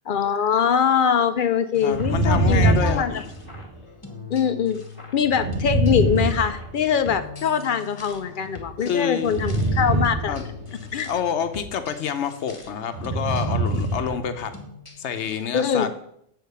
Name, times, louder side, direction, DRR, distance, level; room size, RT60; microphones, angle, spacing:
voice 1, 0.1-3.2 4.3-4.9 5.1-10.5 10.9-11.1 15.5-15.9, left 7 dB, 60° left, 10 dB, 0.6 m, -23 dB
sound 1, 1.7-15.4, left 4 dB, 30° left, 1.2 m, -42 dB
voice 2, 1.8-3.3 8.9-9.4 10.3-10.4 11.1-14.5 15.0-15.9, left 7 dB, 80° left, 9 dB, 1.0 m, -27 dB
sound 2, 1.9-3.8 5.2-7.1 9.2-10.9 12.9-14.2 14.5-14.6, right 1 dB, 85° right, 1.5 m, -24 dB
8.2 x 4.1 x 6.8 m, 0.72 s
omnidirectional pair, 1.2 m